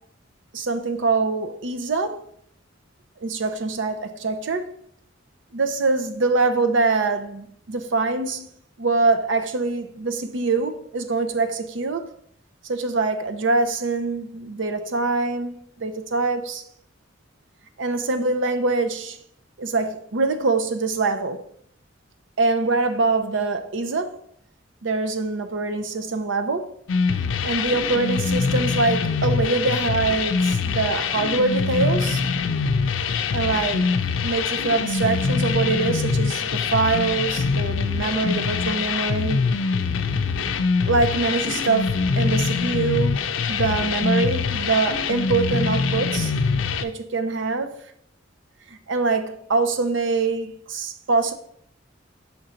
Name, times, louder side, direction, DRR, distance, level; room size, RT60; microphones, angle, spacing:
voice 1, 0.5-2.2 3.2-4.7 5.5-8.5 8.8-12.1 12.6-16.6 17.8-19.2 19.6-21.4 22.4-24.2 24.8-26.7 27.4-32.2 33.3-33.9 34.2-39.4 40.9-43.2 43.5-46.3 46.8-47.7 48.7-51.3, right 3 dB, 70° right, 0.6 m, -24 dB
sound 1, 26.9-46.8, left 5 dB, 85° left, 0.4 m, -24 dB
5.8 x 3.8 x 4.3 m
head